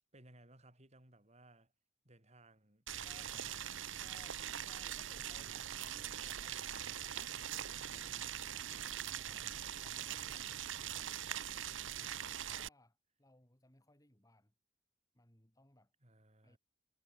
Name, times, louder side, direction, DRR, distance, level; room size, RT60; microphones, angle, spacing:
voice 1, 0.1-1.7 2.0-2.9 3.1-3.5 11.7-12.2 16.0-16.6, right 1 dB, 35° right, 5.8 m, -63 dB
Boiling, 2.9-12.7, right 10 dB, 70° right, 1.1 m, -42 dB
voice 2, 3.0-3.5 4.0-6.7 7.1-10.6 10.9-14.5 15.1-15.9 16.4-16.6, left 1 dB, 15° left, 3.3 m, -66 dB
head